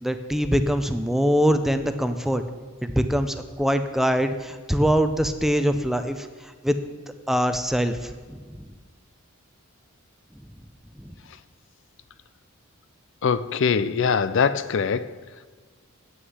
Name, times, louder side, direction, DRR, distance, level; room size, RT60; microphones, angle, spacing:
voice 1, 0.0-2.4 2.8-6.8 7.3-8.6 11.0-11.1, equal, ahead, 9 dB, 0.5 m, -23 dB
voice 2, 13.2-15.1, left 6 dB, 60° left, 15 dB, 0.4 m, -22 dB
9.3 x 6.4 x 7.9 m, 1.5 s
head